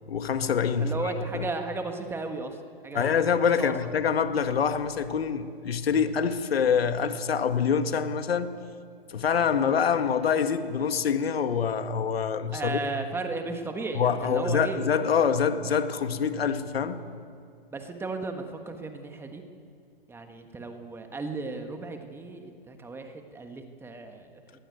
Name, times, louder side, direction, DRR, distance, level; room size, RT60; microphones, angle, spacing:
voice 1, 0.1-0.9 1.3-1.5 2.9-8.5 9.1-12.8 14.0-17.0, left 7 dB, 75° left, 1.9 m, -25 dB
voice 2, 0.8-2.6 2.8-3.1 3.6-3.7 12.5-14.8 17.7-19.4 20.1-24.6, right 3 dB, 10° right, 1.4 m, -35 dB
20.5 x 19.5 x 9.5 m
hypercardioid pair, 145°, 30 cm